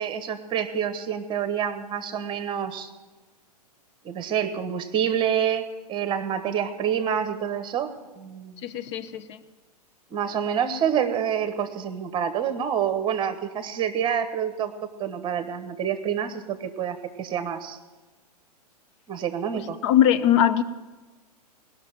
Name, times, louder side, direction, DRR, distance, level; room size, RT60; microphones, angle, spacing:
voice 1, 0.0-2.9 4.0-7.9 8.2-8.6 10.1-14.7 15.0-17.8 19.1-19.8, right 8 dB, 25° right, 10 dB, 1.3 m, -27 dB
voice 2, 8.6-9.4 19.5-20.6, left 10 dB, 45° left, 11 dB, 0.9 m, -21 dB
19.5 x 6.6 x 8.9 m, 1.2 s
figure-of-eight pair, 105°, 20 cm